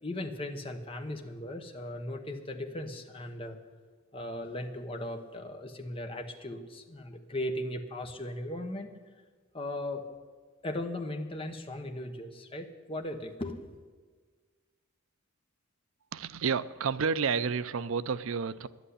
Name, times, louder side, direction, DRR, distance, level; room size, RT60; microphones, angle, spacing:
voice 1, 0.0-3.6 4.1-8.9 9.5-10.1 10.6-13.8, left 1 dB, 25° left, 4 dB, 1.0 m, -37 dB
voice 2, 16.1-18.7, right 6 dB, 65° right, 14 dB, 0.5 m, -30 dB
11.0 x 8.1 x 9.9 m, 1.5 s
head